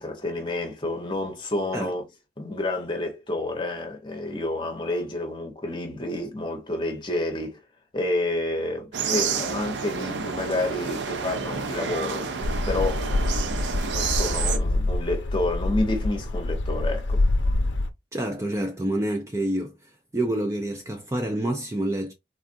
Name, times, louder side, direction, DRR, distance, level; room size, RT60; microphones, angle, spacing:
voice 1, 0.0-2.1 2.4-7.6 7.9-13.7 13.9-17.2, left 2 dB, 25° left, 0.9 m, -29 dB
sound 1, 8.9-14.6, right 6 dB, 80° right, 0.5 m, -29 dB
sound 2, 12.4-17.9, left 2 dB, 90° left, 0.6 m, -25 dB
voice 2, 18.1-19.7 20.1-22.1, right 1 dB, 15° right, 0.4 m, -27 dB
3.6 x 2.4 x 2.5 m
head